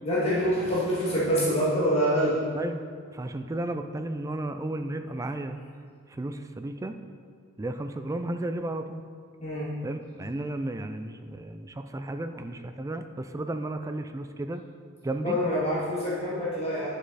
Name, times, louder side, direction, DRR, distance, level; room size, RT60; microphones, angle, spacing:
voice 1, 0.0-2.4 9.4-9.7 15.2-16.9, equal, 30° left, -8 dB, 2.1 m, -26 dB
voice 2, 3.1-5.6 6.1-7.0 7.6-9.0 9.8-14.6 15.0-15.4, right 1 dB, 15° right, 8 dB, 0.3 m, -33 dB
9.7 x 6.4 x 4.0 m, 2.1 s
head